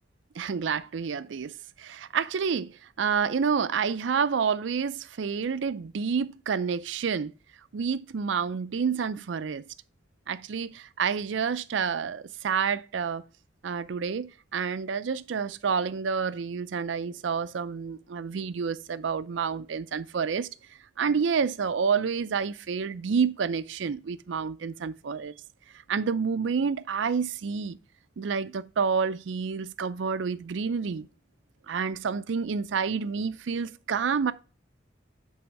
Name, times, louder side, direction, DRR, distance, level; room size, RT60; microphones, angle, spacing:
voice 1, 0.4-7.3 7.7-9.7 10.3-13.2 13.6-20.5 21.0-25.3 25.9-27.8 28.2-31.1 31.7-34.3, right 6 dB, 80° right, 0.4 m, -29 dB
8.2 x 3.5 x 4.7 m
head